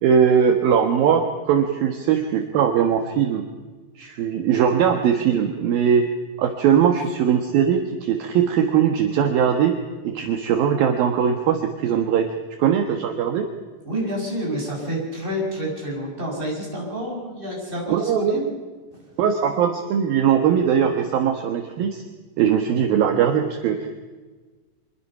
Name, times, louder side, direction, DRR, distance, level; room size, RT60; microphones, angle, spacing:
voice 1, 0.0-3.4 4.0-6.0 6.4-9.8 10.0-12.3 12.6-13.5 17.9-18.3 19.2-22.0 22.4-23.9, right 8 dB, 65° right, 5 dB, 3.0 m, -20 dB
voice 2, 13.8-18.4, equal, 10° right, -2 dB, 6.8 m, -28 dB
25.5 x 22.0 x 5.7 m, 1.3 s
omnidirectional pair, 4.8 m